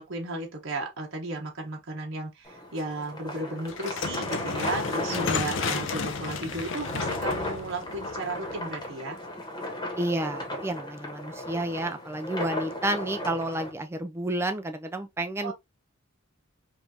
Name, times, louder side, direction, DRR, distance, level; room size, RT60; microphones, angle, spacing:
voice 1, 0.0-9.2 15.4-15.5, right 2 dB, 75° right, 1.0 m, -34 dB
sound 1, 2.4-13.7, left 1 dB, 20° left, 1.1 m, -36 dB
sound 2, 3.7-8.8, left 5 dB, 65° left, 0.5 m, -33 dB
voice 2, 10.0-15.5, right 1 dB, 10° right, 0.3 m, -30 dB
5.1 x 2.5 x 2.7 m
head